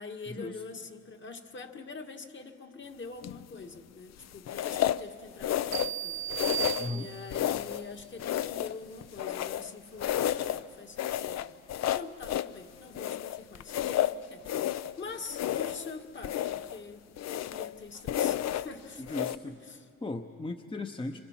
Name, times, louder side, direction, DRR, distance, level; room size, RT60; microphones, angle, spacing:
voice 1, 0.0-6.6 6.9-11.6 12.0-19.9, left 4 dB, 40° left, 5 dB, 1.9 m, -45 dB
sound 1, 3.2-3.6 4.5-5.1 5.4-6.0 6.3-6.9 7.3-7.9 8.2-9.7 10.0-10.6 11.0-12.5 12.9-15.0 15.3-15.9 16.2-16.8 17.2-17.7 18.1-18.7 19.1-19.4, left 12 dB, 60° left, 0.6 m, -31 dB
sound 2, 5.7-7.5, right 12 dB, 65° right, 0.6 m, -35 dB
voice 2, 6.8-7.1 19.1-19.5 20.0-21.2, left 2 dB, 15° left, 6 dB, 0.8 m, -36 dB
26.5 x 25.0 x 5.9 m, 2.6 s
cardioid pair, 90°, 30 cm